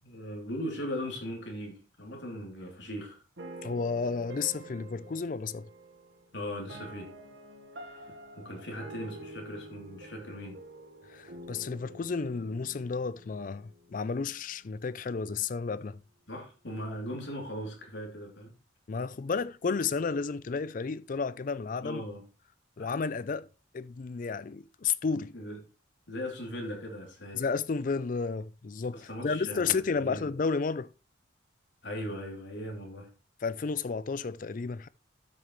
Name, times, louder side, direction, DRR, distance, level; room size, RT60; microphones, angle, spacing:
voice 1, 0.0-3.2 6.3-7.1 7.9-8.1 8.4-10.6 16.3-18.5 21.8-22.2 22.8-22.9 25.3-25.6 26.1-27.4 28.9-30.3 31.8-33.1, equal, 65° left, 2.9 m, -39 dB
sound 1, 3.4-14.5, right 1 dB, 70° right, 1.4 m, -48 dB
voice 2, 3.6-5.7 8.1-8.2 11.1-16.0 18.9-22.0 22.8-23.5 23.7-25.3 27.3-30.9 33.4-34.9, left 5 dB, 45° left, 0.4 m, -32 dB
12.5 x 6.5 x 3.1 m
head